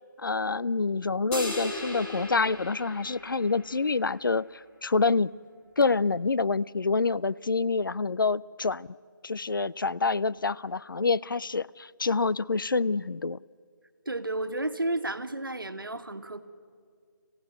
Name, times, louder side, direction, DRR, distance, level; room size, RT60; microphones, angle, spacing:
voice 1, 0.2-5.3 5.8-8.9 9.2-13.4, left 4 dB, 75° left, 19 dB, 0.5 m, -27 dB
sound 1, 1.3-3.9, left 1 dB, 10° left, 3.0 m, -36 dB
voice 2, 14.0-16.4, right 2 dB, 90° right, 9 dB, 1.6 m, -32 dB
26.0 x 16.0 x 9.4 m, 2.2 s
figure-of-eight pair, 160°, 11 cm